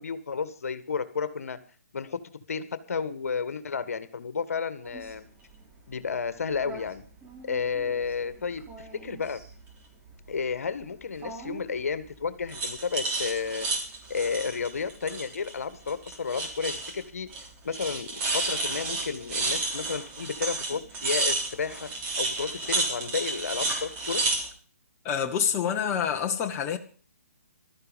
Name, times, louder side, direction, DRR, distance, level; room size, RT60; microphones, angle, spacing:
voice 1, 0.0-1.6 1.9-2.2 2.5-5.2 5.9-7.0 7.4-9.4 10.3-13.7 14.1-17.3 17.6-21.9 22.2-24.2, left 5 dB, 70° left, 1.7 m, -32 dB
sound 1, 4.8-5.0 6.5-6.8 7.2-8.1 8.6-9.5 11.2-11.7 12.5-15.6 15.9-17.0 17.3-17.5 17.7-24.5, right 3 dB, 20° right, 3.6 m, -32 dB
voice 2, 25.0-26.8, left 8 dB, 25° left, 1.5 m, -27 dB
15.5 x 13.0 x 5.2 m
hypercardioid pair, 140°, 8 cm